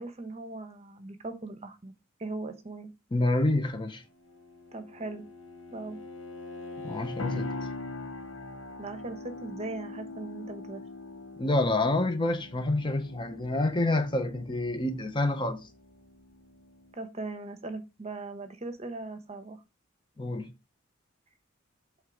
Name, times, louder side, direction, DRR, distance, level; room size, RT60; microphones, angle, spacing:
voice 1, 0.0-1.9 2.2-2.9 4.7-5.2 5.7-6.0 8.8-10.8 16.9-19.6, right 2 dB, 30° right, 0.9 m, -39 dB
voice 2, 3.1-4.0 6.8-7.5 11.4-15.7 20.2-20.5, left 2 dB, 25° left, 0.7 m, -28 dB
Bowed string instrument, 4.0-7.7, left 3 dB, 65° left, 1.2 m, -44 dB
sound 1, 7.2-16.9, left 3 dB, 85° left, 0.9 m, -42 dB
8.0 x 3.3 x 5.1 m
head